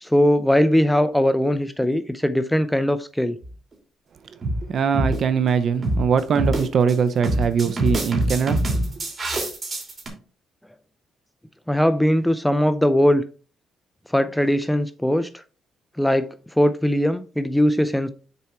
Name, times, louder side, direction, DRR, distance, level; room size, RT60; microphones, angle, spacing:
voice 1, 0.0-3.4 11.7-13.2 14.1-15.4 16.0-18.1, equal, 5° left, 0.4 m, -20 dB
sound 1, 3.4-3.7 4.4-4.6 4.9-5.2 5.8-6.1 6.4-6.9 7.2-10.1, right 1 dB, 35° right, 3.0 m, -24 dB
voice 2, 4.7-8.6, right 6 dB, 55° right, 0.6 m, -21 dB
6.9 x 4.3 x 4.5 m
cardioid pair, 90°, 0 cm